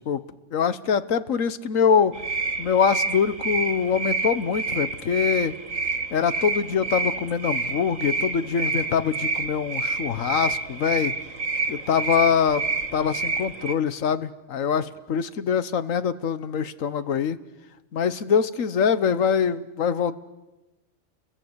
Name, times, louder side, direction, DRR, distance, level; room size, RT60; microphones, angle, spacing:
voice 1, 0.5-2.2 2.6-5.5 6.1-11.1 11.7-12.6 12.9-17.4 17.9-20.2, left 7 dB, 85° left, 14 dB, 1.5 m, -24 dB
sound 1, 2.1-13.8, right 4 dB, 80° right, 2.0 m, -28 dB
29.5 x 22.5 x 8.1 m, 1.1 s
omnidirectional pair, 1.3 m